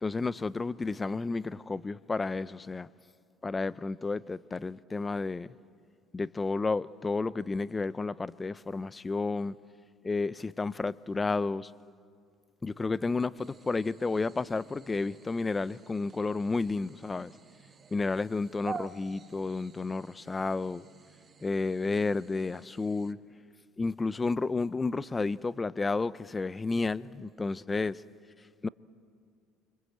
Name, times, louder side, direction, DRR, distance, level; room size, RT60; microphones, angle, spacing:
voice 1, 0.0-2.9 3.4-5.5 6.1-9.5 10.0-11.7 12.6-17.3 17.9-20.8 21.4-23.2 23.8-28.0 28.6-28.7, left 3 dB, 20° left, 0.6 m, -31 dB
sound 1, 13.4-23.1, right 5 dB, 35° right, 1.3 m, -49 dB
28.5 x 26.0 x 8.0 m
supercardioid pair, 90°, 0 cm